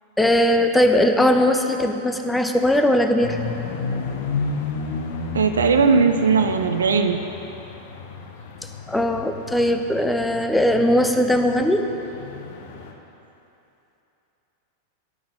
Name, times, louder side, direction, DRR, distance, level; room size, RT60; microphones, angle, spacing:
voice 1, 0.2-3.4 8.9-11.8, left 1 dB, 5° left, 5 dB, 0.6 m, -19 dB
sound 1, 3.2-12.9, left 5 dB, 55° left, 0.7 m, -32 dB
voice 2, 5.3-7.2, right 5 dB, 70° right, 7 dB, 0.4 m, -18 dB
9.4 x 5.6 x 5.7 m, 2.9 s
figure-of-eight pair, 90°, 0 cm